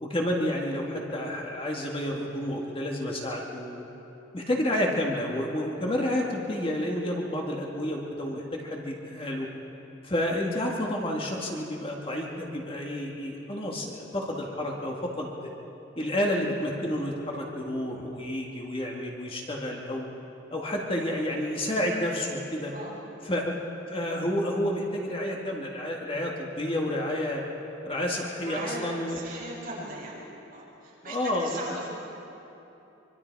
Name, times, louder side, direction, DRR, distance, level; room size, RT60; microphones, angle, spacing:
voice 1, 0.0-3.9 4.3-9.5 10.0-15.5 16.0-20.1 20.5-22.7 23.2-23.5 23.9-27.4 27.8-29.3 31.1-31.8, left 1 dB, 30° left, -1 dB, 2.0 m, -30 dB
voice 2, 28.3-30.2 30.5-32.0, right 2 dB, 45° right, -6 dB, 7.0 m, -39 dB
25.0 x 24.5 x 4.8 m, 3.0 s
head